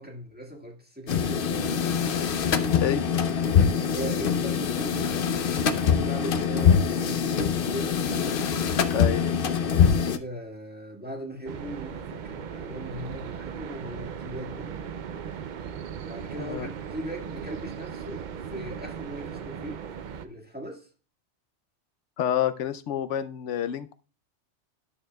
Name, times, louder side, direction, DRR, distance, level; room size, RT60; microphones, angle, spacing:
voice 1, 0.0-1.6 3.9-5.1 5.4-7.9 9.6-14.7 16.0-19.8 20.2-20.9, equal, 10° right, 1.6 m, -39 dB
sound 1, 1.1-10.2, left 7 dB, 55° left, 0.7 m, -24 dB
voice 2, 2.7-3.0 8.9-9.3 16.4-16.7 22.2-23.9, left 10 dB, 85° left, 0.9 m, -28 dB
sound 2, 11.5-20.3, right 7 dB, 55° right, 0.5 m, -38 dB
12.0 x 6.4 x 2.3 m
omnidirectional pair, 1.2 m